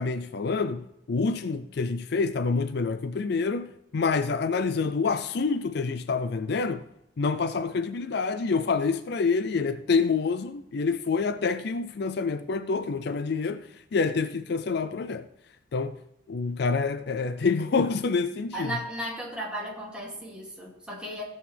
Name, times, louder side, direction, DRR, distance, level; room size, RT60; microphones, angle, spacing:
voice 1, 0.0-6.8 7.2-15.2 15.7-16.0 16.3-18.7, left 4 dB, 55° left, 0.4 m, -27 dB
voice 2, 18.5-21.2, equal, 5° right, 2.6 m, -35 dB
16.5 x 7.1 x 3.4 m
head